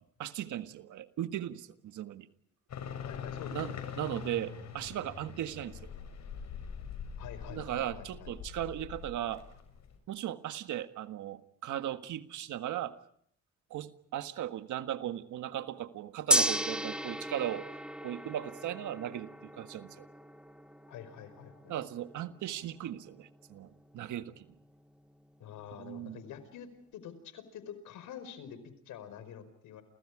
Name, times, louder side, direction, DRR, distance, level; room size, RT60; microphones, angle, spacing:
voice 1, 0.2-2.3 3.5-5.9 7.5-9.4 10.1-12.9 13.7-17.7 18.0-20.0 21.7-24.5 25.8-26.2, right 11 dB, 75° right, 9 dB, 1.7 m, -37 dB
sound 1, 2.7-10.0, left 7 dB, 65° left, 6.9 m, -43 dB
voice 2, 3.0-4.0 7.2-8.3 20.9-21.7 25.4-29.8, left 8 dB, 85° left, 12 dB, 5.0 m, -47 dB
Gong, 16.3-26.5, right 1 dB, 5° right, 1.6 m, -37 dB
30.0 x 29.5 x 5.0 m, 0.66 s
cardioid pair, 90°, 30 cm